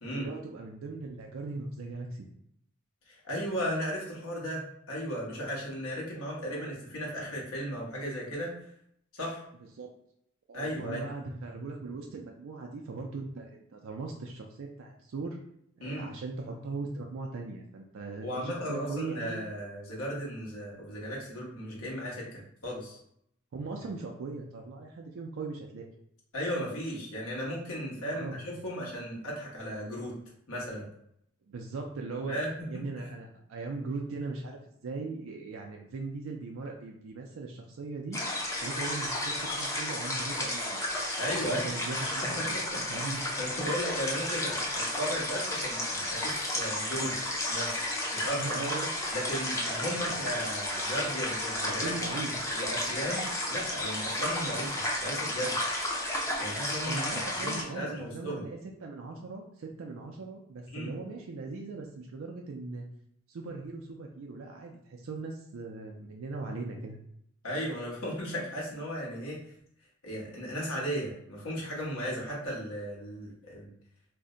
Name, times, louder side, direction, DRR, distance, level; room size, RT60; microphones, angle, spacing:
voice 1, 0.1-2.3 5.9-6.8 9.7-9.9 10.5-15.4 15.8-19.4 23.5-25.9 28.1-28.4 31.5-32.4 32.7-38.2 38.6-40.8 41.4-42.6 42.9-43.2 43.6-43.7 48.4-48.9 50.1-50.2 51.7-52.4 56.8-62.9 63.3-67.0, right 3 dB, 70° right, 1 dB, 0.4 m, -39 dB
voice 2, 3.1-8.5 9.1-9.4 10.5-11.0 15.8-16.1 18.2-23.0 26.3-30.1 30.5-30.9 32.3-32.8 41.2-41.7 42.2-47.2 47.5-47.8 48.1-48.4 49.1-51.9 52.5-55.6 56.4-58.5 60.7-60.9 67.4-69.4 70.0-73.7, equal, 85° left, -4 dB, 1.1 m, -35 dB
sound 1, 38.1-57.6, left 1 dB, 15° left, 0.5 m, -32 dB
2.6 x 2.1 x 3.7 m, 0.72 s
head